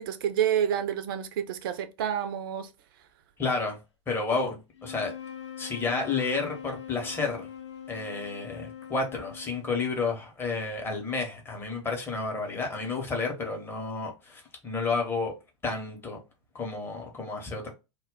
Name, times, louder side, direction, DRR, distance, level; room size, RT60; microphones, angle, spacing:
voice 1, 0.0-2.7, right 9 dB, 45° right, 0.4 m, -28 dB
voice 2, 3.4-3.8 4.1-5.1 5.6-7.5 7.9-15.3 15.6-16.2 16.5-17.7, left 4 dB, 15° left, 0.7 m, -31 dB
sound 1, 4.7-10.2, left 8 dB, 65° left, 0.7 m, -42 dB
2.1 x 2.1 x 3.6 m
figure-of-eight pair, 95°, 16 cm